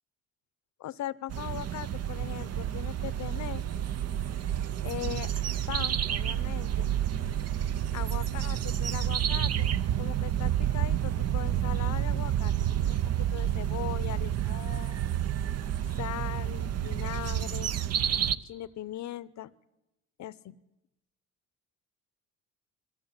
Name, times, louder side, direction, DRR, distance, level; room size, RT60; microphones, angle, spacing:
voice 1, 0.8-3.6 4.8-5.4 5.7-6.9 7.9-9.7 10.0-12.5 12.8-13.0 13.3-15.0 16.0-17.8 18.4-19.5 20.2-20.6, left 13 dB, 65° left, 19 dB, 0.7 m, -39 dB
sound 1, 1.3-18.4, right 10 dB, 55° right, 0.7 m, -29 dB
22.5 x 15.0 x 8.8 m, 0.93 s
cardioid pair, 90°, 30 cm